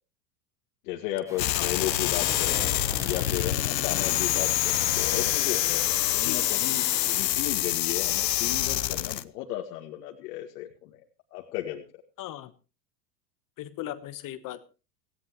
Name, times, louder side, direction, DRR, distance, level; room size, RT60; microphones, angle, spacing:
voice 1, 0.8-2.7 3.0-11.0 11.3-11.8, left 13 dB, 65° left, 1 dB, 2.1 m, -35 dB
Waves surf, 1.3-7.1, left 1 dB, 5° right, 3.8 m, -43 dB
sound 1, 1.4-9.2, left 14 dB, 85° left, 1.0 m, -26 dB
voice 2, 1.6-2.1 6.2-6.4 12.2-12.5 13.6-14.6, left 13 dB, 40° left, 13 dB, 1.2 m, -38 dB
18.0 x 16.5 x 3.0 m, 0.32 s
hypercardioid pair, 100°, 49 cm